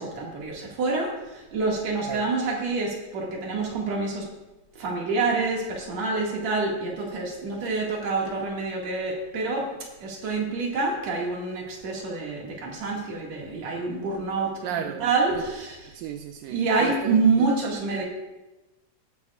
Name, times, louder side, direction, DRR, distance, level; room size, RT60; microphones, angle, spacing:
voice 1, 0.0-4.2 4.7-9.6 10.0-16.0 16.5-18.0, right 3 dB, 55° right, -2 dB, 3.1 m, -27 dB
voice 2, 14.6-15.1 15.9-17.2 17.5-17.6 17.9-18.0, right 9 dB, 80° right, 8 dB, 2.2 m, -34 dB
21.0 x 9.0 x 2.5 m, 1.1 s
omnidirectional pair, 4.0 m